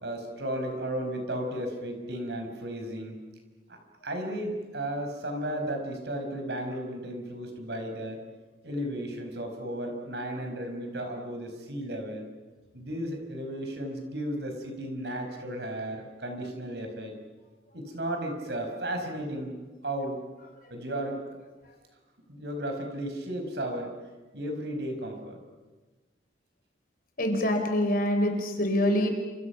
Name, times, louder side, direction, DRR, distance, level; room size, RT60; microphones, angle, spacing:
voice 1, 0.0-3.2 3.7-8.2 8.6-12.3 12.7-17.1 17.7-19.6 19.8-20.2 20.7-21.2 22.3-24.0 24.3-25.4, right 1 dB, 70° right, 4 dB, 5.5 m, -34 dB
voice 2, 27.2-29.1, left 1 dB, 55° left, 4 dB, 4.3 m, -25 dB
29.0 x 27.0 x 6.0 m, 1.2 s
head